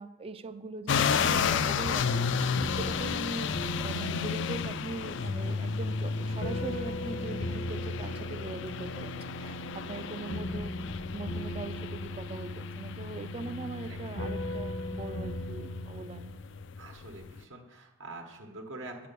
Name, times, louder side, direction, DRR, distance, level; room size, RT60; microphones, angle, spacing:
voice 1, 0.0-2.3 2.7-9.4 9.7-10.7 11.1-16.3, right 3 dB, 30° right, 12 dB, 0.4 m, -41 dB
sound 1, 0.9-17.4, left 6 dB, 70° left, 0.4 m, -33 dB
sound 2, 1.6-17.1, left 1 dB, 85° left, 1.4 m, -39 dB
voice 2, 9.4-10.4 13.9-14.0 16.8-19.1, right 2 dB, 75° right, 2 dB, 1.1 m, -46 dB
8.9 x 4.9 x 6.7 m, 0.98 s
head